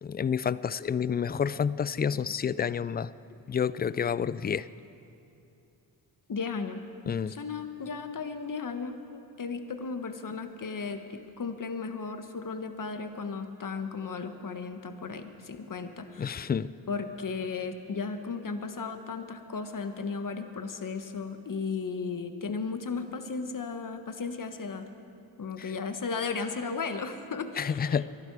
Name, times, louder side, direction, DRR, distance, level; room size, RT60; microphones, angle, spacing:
voice 1, 0.0-3.1 3.5-4.7 7.1-7.4 16.2-16.7 25.6-25.7 27.6-28.1, left 7 dB, 25° left, 18 dB, 0.3 m, -29 dB
voice 2, 6.3-6.8 7.3-16.5 16.9-24.9 25.4-28.0, left 4 dB, 45° left, 8 dB, 1.4 m, -35 dB
22.5 x 12.0 x 4.8 m, 2.8 s
cardioid pair, 60°, 46 cm